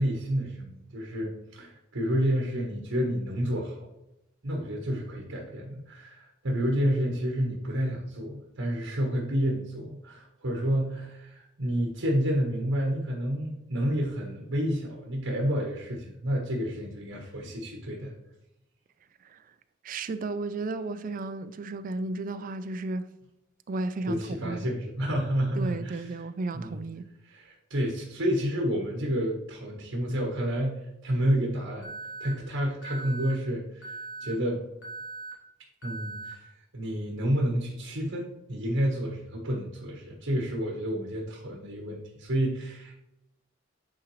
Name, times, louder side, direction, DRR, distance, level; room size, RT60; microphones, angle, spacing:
voice 1, 0.0-3.9 4.4-18.1 24.1-26.1 26.5-26.8 27.2-34.6 35.8-42.9, equal, 85° right, 1.2 m, -30 dB
voice 2, 19.8-23.1 23.7-24.7 25.6-27.0, right 3 dB, 45° right, 0.4 m, -33 dB
Alarm, 31.8-32.3 32.8-33.3 33.8-34.3 34.8-35.3 35.8-36.3, right 3 dB, 75° left, 1.8 m, -39 dB
8.7 x 3.8 x 3.1 m
head